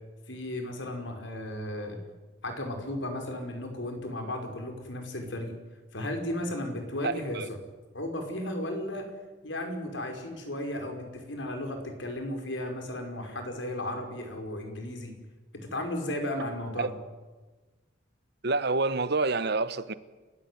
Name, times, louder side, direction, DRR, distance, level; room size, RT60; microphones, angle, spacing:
voice 1, 0.3-2.0 2.4-5.6 5.9-7.6 7.9-9.1 9.4-15.1 15.5-17.0, left 1 dB, 80° left, 5.4 m, -35 dB
voice 2, 7.0-7.5 16.8-16.9 18.4-19.9, right 3 dB, 60° right, 1.2 m, -28 dB
29.5 x 16.5 x 9.5 m
head